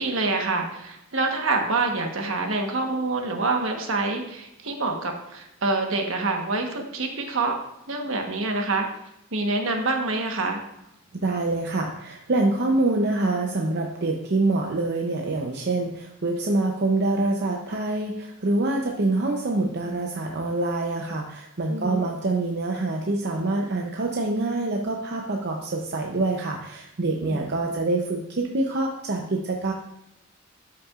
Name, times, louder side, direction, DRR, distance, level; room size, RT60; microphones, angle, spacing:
voice 1, 0.0-7.5 7.9-8.9 9.3-10.6 21.7-22.0 27.3-27.5, right 3 dB, 75° right, 3 dB, 1.2 m, -26 dB
voice 2, 11.1-29.7, right 2 dB, 55° right, 1 dB, 0.7 m, -25 dB
12.0 x 5.8 x 2.5 m, 0.84 s
head